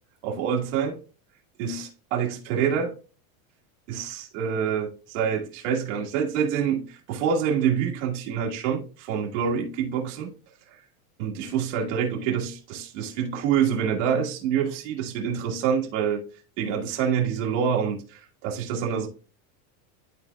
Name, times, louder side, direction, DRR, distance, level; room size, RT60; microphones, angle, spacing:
voice 1, 0.2-1.0 1.6-2.9 3.9-10.3 10.7-10.8 11.2-16.2 16.6-19.1, right 7 dB, 50° right, 1.7 m, -26 dB
12.0 x 4.1 x 2.3 m
supercardioid pair, 180°, 45 cm